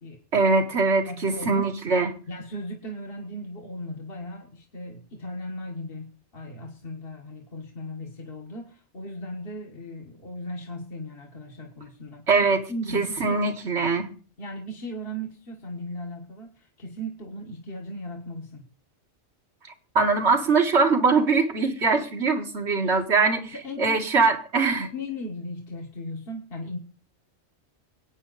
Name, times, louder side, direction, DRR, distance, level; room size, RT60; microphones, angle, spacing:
voice 1, 0.3-2.1 12.3-12.6 12.9-14.1 20.0-23.4 23.8-24.9, right 4 dB, 70° right, 4 dB, 2.1 m, -22 dB
voice 2, 1.0-1.7 2.3-13.4 14.4-18.7 23.4-24.0 24.6-26.8, left 1 dB, 55° left, 1 dB, 1.8 m, -37 dB
24.0 x 8.9 x 4.1 m, 0.39 s
omnidirectional pair, 1.2 m